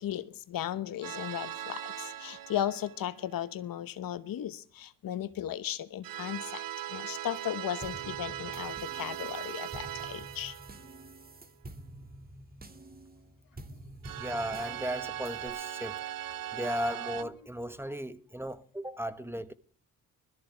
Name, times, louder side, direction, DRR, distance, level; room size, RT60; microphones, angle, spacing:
voice 1, 0.0-10.6, left 11 dB, 85° left, 1.0 m, -36 dB
sound 1, 1.0-3.2 6.0-11.3 14.0-17.2, right 12 dB, 90° right, 0.8 m, -40 dB
sound 2, 7.8-15.5, right 1 dB, 25° right, 2.1 m, -48 dB
voice 2, 14.2-16.0 16.5-19.5, equal, 5° right, 1.2 m, -36 dB
21.0 x 14.0 x 3.3 m
cardioid pair, 75°, 33 cm